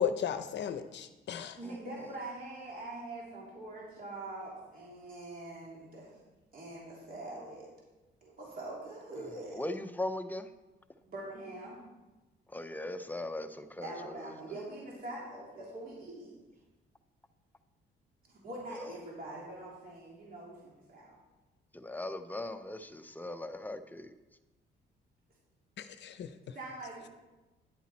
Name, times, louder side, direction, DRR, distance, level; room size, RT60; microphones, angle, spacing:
voice 1, 0.0-1.6 25.8-26.6, left 8 dB, 65° left, 10 dB, 0.7 m, -35 dB
voice 2, 1.6-6.1 6.5-7.7 8.2-9.6 11.0-11.8 13.8-16.3 18.3-21.2 26.5-27.1, right 2 dB, 45° right, -4 dB, 3.3 m, -44 dB
voice 3, 9.5-10.5 12.5-14.3 18.7-18.9 21.7-24.1, left 1 dB, 10° left, 9 dB, 0.6 m, -39 dB
10.5 x 8.2 x 4.3 m, 1.1 s
cardioid pair, 90°, 20 cm